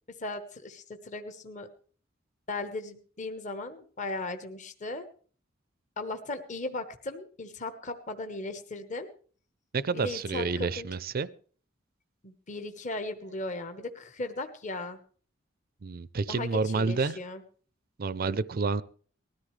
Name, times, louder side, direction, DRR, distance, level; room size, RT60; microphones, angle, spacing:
voice 1, 0.2-1.7 2.5-5.0 6.0-9.1 9.9-10.9 12.2-15.0 16.3-17.4, left 2 dB, 40° left, 7 dB, 1.2 m, -37 dB
voice 2, 9.7-11.3 15.8-17.2 18.0-18.8, right 4 dB, 50° right, 16 dB, 0.5 m, -29 dB
19.5 x 13.5 x 3.3 m, 0.44 s
head